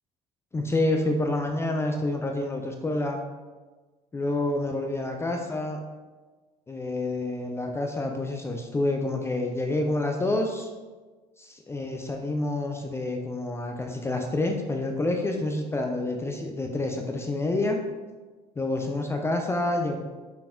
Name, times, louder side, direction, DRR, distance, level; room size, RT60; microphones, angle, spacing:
voice 1, 0.5-3.2 4.1-5.8 6.7-10.7 11.4-17.8 18.6-20.0, left 2 dB, 10° left, 3 dB, 0.4 m, -28 dB
5.3 x 4.3 x 2.3 m, 1.3 s
figure-of-eight pair, 65°, 21 cm